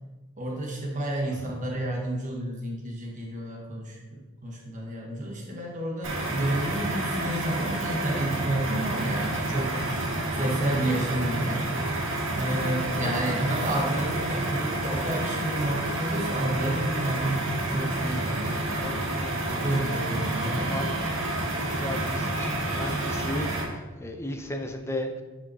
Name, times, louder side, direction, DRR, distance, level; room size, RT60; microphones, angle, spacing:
voice 1, 0.4-11.7 12.4-17.4 17.7-18.9 19.6-20.8, right 1 dB, 35° right, -1 dB, 1.1 m, -30 dB
sound 1, 6.0-23.6, right 2 dB, 70° right, 2.0 m, -29 dB
voice 2, 13.0-13.3 18.7-19.7 20.7-20.8 21.5-25.2, left 1 dB, 10° left, 5 dB, 0.6 m, -36 dB
5.7 x 5.3 x 5.5 m, 1.2 s
head